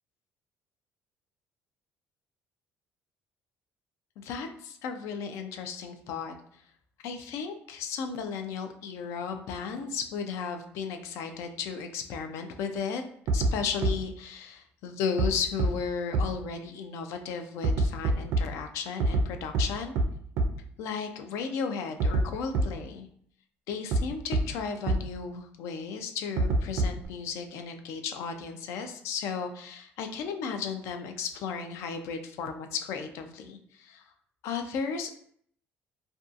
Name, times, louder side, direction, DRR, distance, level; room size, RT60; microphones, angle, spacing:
voice 1, 4.2-6.4 7.0-13.0 13.3-19.9 20.8-23.1 23.7-34.0 34.4-35.1, left 6 dB, 75° left, 6 dB, 0.3 m, -35 dB
sound 1, 13.3-13.5 13.8-13.9 15.2-15.3 15.6-15.7 16.1-16.2 17.6-18.4 19.0-19.2 19.5-19.6 20.0-20.1 20.4-20.5 22.0-22.2 22.5-22.6 23.9-24.0 24.3-24.4 24.9-25.0 26.4-27.1, right 2 dB, 70° right, 0.4 m, -24 dB
2.6 x 2.2 x 2.4 m, 0.63 s
cardioid pair, 150°, 5 cm